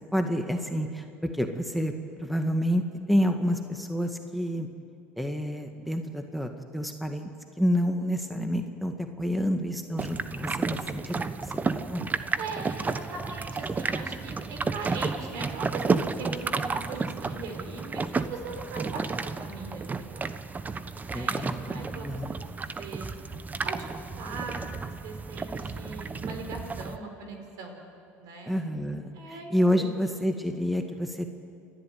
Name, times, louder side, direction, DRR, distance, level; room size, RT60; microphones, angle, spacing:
voice 1, 0.1-2.8 3.1-4.7 5.2-7.3 7.6-12.0 21.1-22.3 28.5-31.3, equal, ahead, 5 dB, 1.9 m, -29 dB
sound 1, 10.0-27.0, right 4 dB, 25° right, 1.2 m, -32 dB
voice 2, 12.4-20.3 21.1-23.1 23.6-27.8 28.2-28.6 29.1-30.0, right 3 dB, 65° right, 4 dB, 4.8 m, -40 dB
29.5 x 12.5 x 9.5 m, 2.6 s
hypercardioid pair, 75°, 7 cm